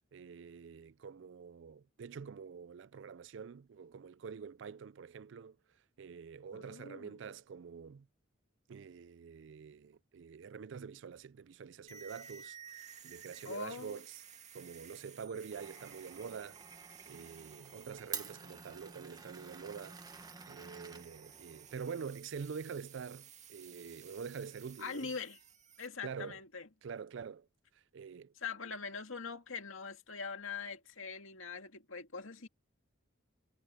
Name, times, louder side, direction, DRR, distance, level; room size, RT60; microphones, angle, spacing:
voice 1, 0.1-5.6 6.0-8.1 8.7-14.2 14.5-16.6 17.1-20.0 20.5-25.1 26.0-26.4 26.8-27.5 27.9-28.3, right 6 dB, 65° right, 0.4 m, -46 dB
voice 2, 6.5-7.2 13.4-14.0 24.8-25.4 25.8-26.7 28.4-32.5, left 5 dB, 90° left, 2.2 m, -43 dB
sound 1, 11.9-25.9, right 8 dB, 35° right, 2.1 m, -55 dB
Glass, 15.5-21.8, right 5 dB, 20° right, 1.3 m, -49 dB
head